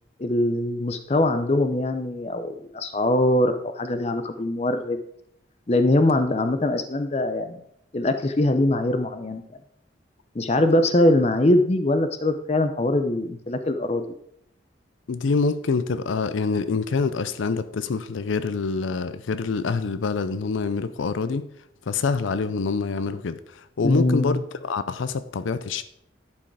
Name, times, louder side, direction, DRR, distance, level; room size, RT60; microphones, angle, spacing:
voice 1, 0.2-5.0 5.7-7.6 7.9-9.4 10.3-14.0 23.8-24.4, left 1 dB, 35° left, 9 dB, 0.6 m, -22 dB
voice 2, 15.1-21.4 21.9-25.8, left 4 dB, 85° left, 13 dB, 0.5 m, -26 dB
10.5 x 4.8 x 4.8 m, 0.72 s
head